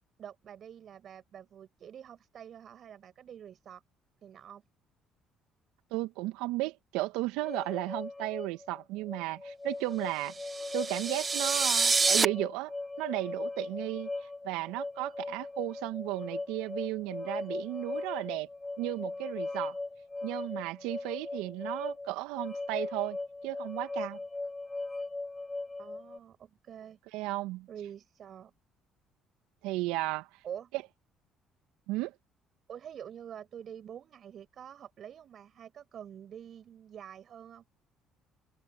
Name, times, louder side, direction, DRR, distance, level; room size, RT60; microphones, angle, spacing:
voice 1, 0.2-3.8 4.2-4.6 25.8-27.0 27.7-28.5 30.4-30.7 32.7-37.6, right 9 dB, 55° right, 6.6 m, -46 dB
voice 2, 5.9-10.3 10.7-12.7 13.0-14.1 14.4-18.5 18.8-19.8 20.2-23.2 23.4-24.2 27.1-27.7 29.6-30.3 31.9-32.1, right 20 dB, 75° right, 2.1 m, -34 dB
sound 1, 7.4-26.2, left 2 dB, 20° left, 1.1 m, -39 dB
sound 2, 10.4-12.2, right 4 dB, 30° right, 1.2 m, -27 dB
hypercardioid pair, 60°, 0 cm